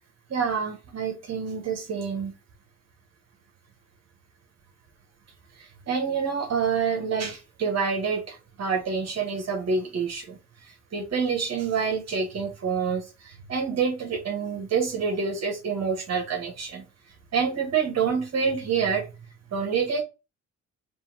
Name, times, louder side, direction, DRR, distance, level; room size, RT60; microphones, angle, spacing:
voice 1, 0.3-2.3 5.6-10.4 10.9-16.8 17.3-19.1 19.5-20.0, right 6 dB, 60° right, 1.5 m, -27 dB
5.4 x 2.7 x 2.9 m
cardioid pair, 90°, 30 cm